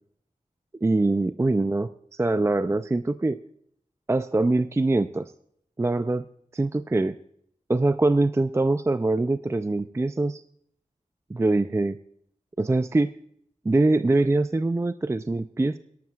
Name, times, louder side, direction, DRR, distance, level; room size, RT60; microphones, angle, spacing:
voice 1, 0.8-3.4 4.1-5.3 5.8-6.3 6.5-7.2 7.7-10.4 11.3-12.0 12.6-13.1 13.7-15.8, right 2 dB, 20° right, 11 dB, 0.3 m, -23 dB
20.0 x 11.5 x 2.3 m, 0.69 s
wide cardioid pair, 60°, 14 cm